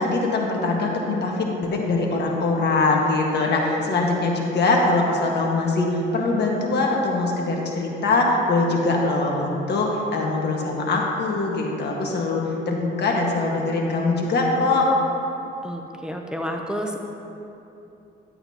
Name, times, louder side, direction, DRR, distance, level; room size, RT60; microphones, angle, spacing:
voice 1, 0.0-14.9, left 3 dB, 60° left, -1 dB, 1.6 m, -22 dB
voice 2, 15.6-17.0, equal, 5° right, 2 dB, 0.7 m, -30 dB
12.0 x 8.6 x 2.9 m, 2.8 s
cardioid pair, 90°, 20 cm